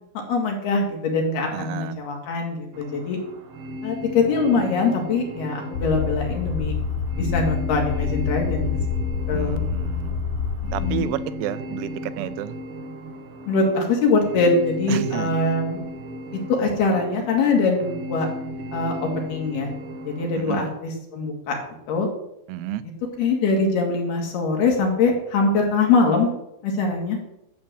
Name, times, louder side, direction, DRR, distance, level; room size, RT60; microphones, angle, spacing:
voice 1, 0.3-3.2 3.8-6.8 7.2-8.8 9.3-9.6 10.7-11.1 13.5-15.8 16.5-18.3 18.7-19.7 20.1-21.6 21.9-22.1 23.2-26.3 26.6-27.2, left 3 dB, 55° left, 1 dB, 3.8 m, -22 dB
voice 2, 1.5-2.0 9.3-10.2 10.7-12.6 14.9-15.4 20.4-20.7 22.5-22.8, right 12 dB, 90° right, 13 dB, 3.5 m, -31 dB
sound 1, 2.7-20.6, equal, 65° right, 2.3 m, -36 dB
sound 2, 5.7-11.0, left 5 dB, 80° left, 3.4 m, -26 dB
12.5 x 7.4 x 7.6 m, 0.84 s
omnidirectional pair, 6.0 m